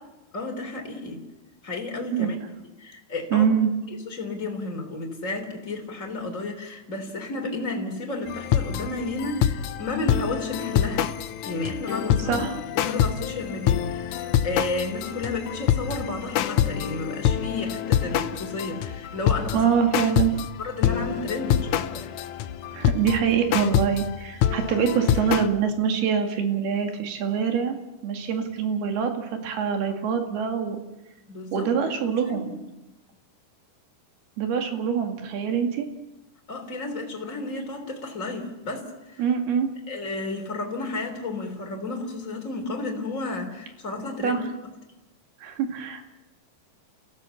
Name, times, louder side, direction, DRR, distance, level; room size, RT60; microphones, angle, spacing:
voice 1, 0.3-1.2 1.6-2.3 2.8-3.5 4.0-11.1 11.4-12.5 12.7-19.6 20.3-22.1 29.3-29.4 31.3-32.5 36.5-39.2 39.9-44.4, left 2 dB, 20° left, 3 dB, 3.4 m, -32 dB
voice 2, 3.3-3.7 12.3-12.5 19.5-20.3 22.7-27.8 28.0-30.8 31.5-32.5 34.4-35.9 39.2-39.7 44.2-44.4 45.4-46.0, right 7 dB, 75° right, 4 dB, 4.1 m, -24 dB
sound 1, 8.3-20.5 20.8-25.5, left 10 dB, 75° left, 1.8 m, -26 dB
28.5 x 16.5 x 7.1 m, 1.0 s
omnidirectional pair, 4.5 m